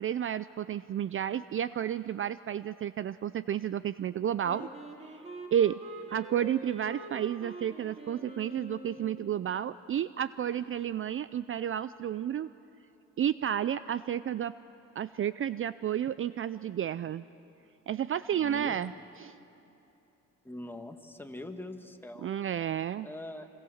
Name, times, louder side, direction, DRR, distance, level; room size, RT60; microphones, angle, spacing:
voice 1, 0.0-4.7 5.5-5.8 6.1-12.5 13.2-14.5 15.0-17.2 17.9-18.9 19.2-19.3 22.2-23.1, right 10 dB, 45° right, 15 dB, 0.5 m, -31 dB
Wind instrument woodwind instrument, 4.4-9.5, right 1 dB, 20° right, 3.5 m, -45 dB
voice 2, 18.3-19.0 20.4-22.3 23.0-23.5, left 1 dB, 5° left, 5 dB, 1.8 m, -43 dB
26.0 x 26.0 x 7.3 m, 2.9 s
cardioid pair, 90°, 30 cm